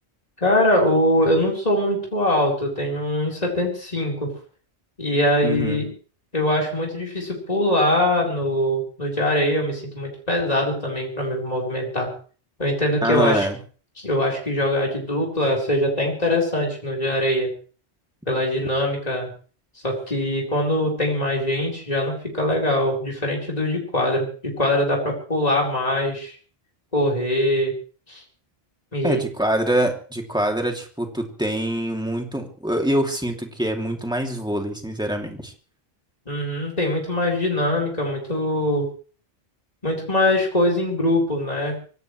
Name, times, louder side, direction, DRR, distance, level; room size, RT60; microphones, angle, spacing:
voice 1, 0.4-4.3 5.0-5.9 6.3-12.1 12.6-13.5 14.0-17.5 18.3-19.3 19.8-26.3 26.9-27.7 28.1-28.2 28.9-29.2 36.3-38.9 39.8-41.7, left 1 dB, 35° left, -2 dB, 4.5 m, -22 dB
voice 2, 5.4-5.8 13.0-13.6 29.0-35.5, right 1 dB, 5° right, 2 dB, 2.7 m, -24 dB
24.0 x 17.5 x 3.3 m, 0.40 s
omnidirectional pair, 1.1 m